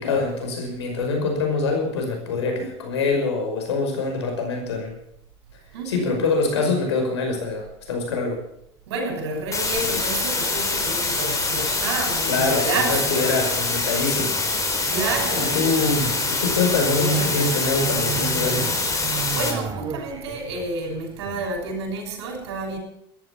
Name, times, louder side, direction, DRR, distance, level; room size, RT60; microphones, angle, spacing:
voice 1, 0.0-5.0 5.9-8.4 12.3-14.4 15.4-18.8, left 3 dB, 90° left, 5.5 m, -24 dB
voice 2, 5.7-6.3 8.9-13.3 14.9-15.6 19.2-22.8, right 3 dB, 80° right, 6.2 m, -29 dB
sound 1, 9.5-19.5, left 3 dB, 25° left, 4.6 m, -25 dB
sound 2, 12.7-21.7, right 6 dB, 30° right, 2.2 m, -34 dB
14.0 x 11.5 x 7.2 m
hypercardioid pair, 85°, 14 cm